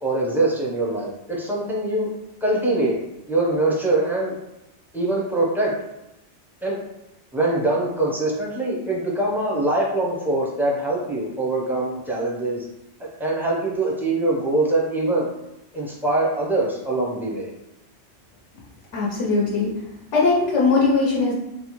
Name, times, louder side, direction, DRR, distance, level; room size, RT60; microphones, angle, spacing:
voice 1, 0.0-2.1 2.4-3.0 3.3-4.4 4.9-5.7 6.6-6.8 7.3-12.6 13.0-15.3 15.7-17.5, right 2 dB, 5° right, -4 dB, 0.4 m, -23 dB
voice 2, 18.9-19.7 20.1-21.3, left 3 dB, 80° left, -5 dB, 1.0 m, -20 dB
4.1 x 2.1 x 3.0 m, 0.87 s
omnidirectional pair, 1.2 m